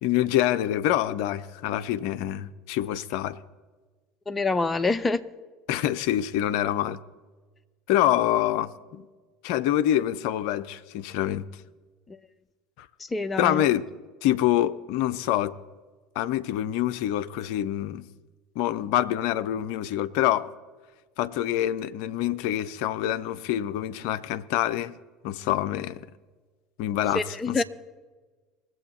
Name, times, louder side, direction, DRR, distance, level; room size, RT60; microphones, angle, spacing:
voice 1, 0.0-3.4 5.7-7.0 7.9-9.1 9.4-11.5 12.8-12.9 13.4-13.9 14.2-15.5 16.2-18.1 18.6-20.5 21.2-24.9 25.2-26.1 26.8-27.6, left 12 dB, 60° left, 0.5 m, -26 dB
voice 2, 4.3-5.2 12.1-12.2 13.0-13.6 27.1-27.6, left 3 dB, 20° left, 0.6 m, -26 dB
21.0 x 7.7 x 4.1 m
figure-of-eight pair, 70°, 0 cm